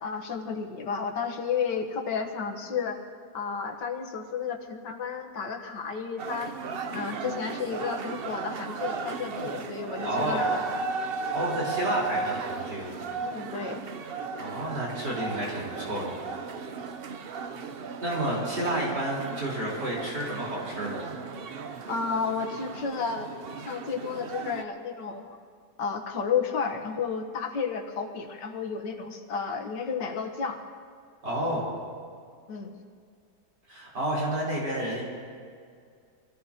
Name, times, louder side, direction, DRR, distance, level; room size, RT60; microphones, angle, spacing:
voice 1, 0.0-3.0 3.3-6.5 6.9-10.6 13.2-13.8 21.9-23.3 23.6-25.4 25.8-30.6 32.5-32.8, left 6 dB, 90° left, 4 dB, 1.9 m, -32 dB
sound 1, 6.2-24.6, right 4 dB, 55° right, 0.6 m, -35 dB
voice 2, 10.0-10.5 11.3-12.9 14.4-16.4 18.0-21.0 31.2-31.7 33.7-35.0, right 1 dB, 80° right, -5 dB, 4.7 m, -30 dB
26.0 x 17.0 x 2.9 m, 2.2 s
omnidirectional pair, 1.8 m